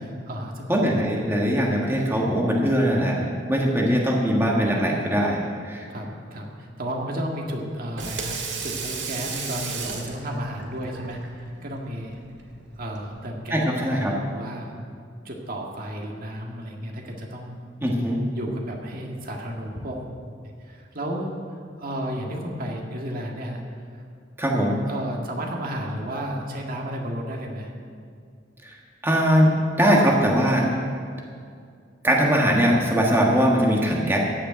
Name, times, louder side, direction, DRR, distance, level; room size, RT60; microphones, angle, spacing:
voice 1, 0.0-1.1 5.9-12.2 12.8-13.6 13.9-14.7 15.2-17.6 18.4-20.0 20.6-23.6 23.9-24.0 24.9-27.7, equal, 50° right, 0 dB, 1.9 m, -33 dB
voice 2, 0.7-5.9 13.5-14.1 17.8-18.2 24.4-24.8 28.6-28.8 29.0-30.7 32.0-34.2, equal, 15° right, -2 dB, 1.5 m, -21 dB
Water tap faucet / Sink (filling or washing), 7.8-13.3, right 5 dB, 75° right, 1.8 m, -35 dB
15.0 x 6.6 x 9.0 m, 2.2 s
head